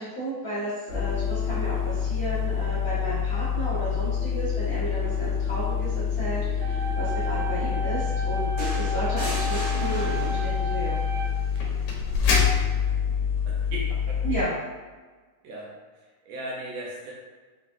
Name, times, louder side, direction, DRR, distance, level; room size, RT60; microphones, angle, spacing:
voice 1, 0.0-8.5 8.7-11.0 14.2-14.5, right 1 dB, 65° left, -12 dB, 0.9 m, -33 dB
sound 1, 0.9-14.4, left 7 dB, 85° left, 2.1 m, -26 dB
sound 2, 6.6-11.6, right 2 dB, 90° right, 1.4 m, -34 dB
sound 3, 8.6-10.7 12.1-12.3, right 1 dB, 55° right, 1.0 m, -35 dB
voice 2, 13.5-14.2 15.4-17.1, right 1 dB, 75° right, -3 dB, 1.7 m, -38 dB
5.7 x 2.4 x 2.5 m, 1.4 s
omnidirectional pair, 3.5 m